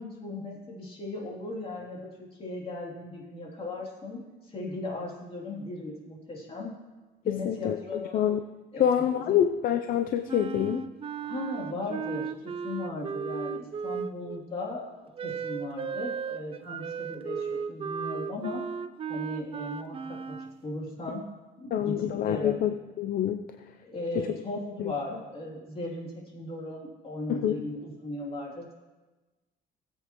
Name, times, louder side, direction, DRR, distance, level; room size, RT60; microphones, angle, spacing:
voice 1, 0.0-6.7 7.2-8.2 8.7-9.4 11.2-14.9 15.2-18.7 19.1-20.4 20.6-21.2 21.6-22.6 23.8-28.7, left 2 dB, 35° left, -3 dB, 3.1 m, -37 dB
voice 2, 7.3-8.4 8.8-10.8 21.7-23.4 24.8-24.9 27.3-27.5, left 10 dB, 60° left, 7 dB, 0.6 m, -27 dB
Wind instrument woodwind instrument, 10.3-14.4 15.2-20.6, right 6 dB, 35° right, 0.5 m, -35 dB
19.5 x 8.0 x 3.1 m, 1.2 s
cardioid pair, 110°, 17 cm